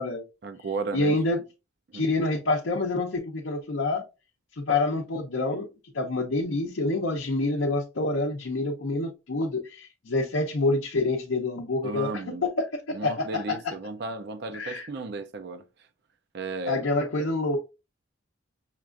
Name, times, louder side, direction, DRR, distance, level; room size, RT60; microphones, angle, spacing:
voice 1, 0.4-1.2 1.9-2.0 11.8-12.5 12.9-15.6 16.3-16.9, right 3 dB, 55° right, 0.4 m, -34 dB
voice 2, 0.9-1.4 1.9-4.0 4.6-5.7 5.9-13.7 14.5-14.9 16.7-17.6, left 2 dB, 70° left, 0.6 m, -27 dB
5.8 x 2.4 x 2.4 m
head